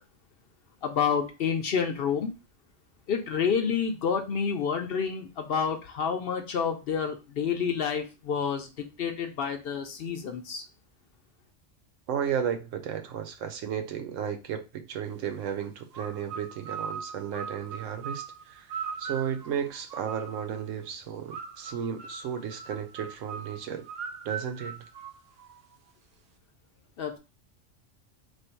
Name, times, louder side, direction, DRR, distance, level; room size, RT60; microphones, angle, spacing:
voice 1, 0.8-2.3 3.1-10.6 27.0-27.2, left 6 dB, 60° left, 0.7 m, -29 dB
voice 2, 12.1-23.9 24.2-24.8, right 8 dB, 85° right, 1.0 m, -34 dB
sound 1, 15.9-20.6 21.3-25.8, right 6 dB, 60° right, 0.8 m, -40 dB
3.2 x 2.5 x 4.3 m
omnidirectional pair, 1.3 m